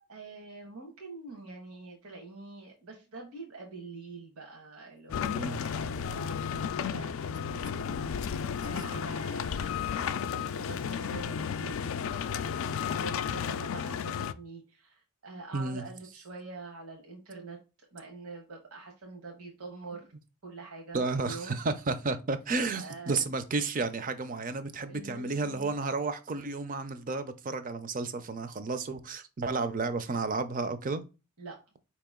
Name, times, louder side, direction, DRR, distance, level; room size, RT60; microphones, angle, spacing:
voice 1, 0.0-11.9 12.2-17.6 17.9-20.1 20.4-21.5 22.7-23.3 24.9-25.7 31.4-31.6, right 3 dB, 75° right, 1.2 m, -45 dB
sound 1, 5.1-14.3, left 7 dB, 60° left, 0.3 m, -33 dB
voice 2, 5.2-5.6 15.5-15.8 20.9-31.0, right 3 dB, 35° right, 0.5 m, -32 dB
4.8 x 2.9 x 3.6 m
head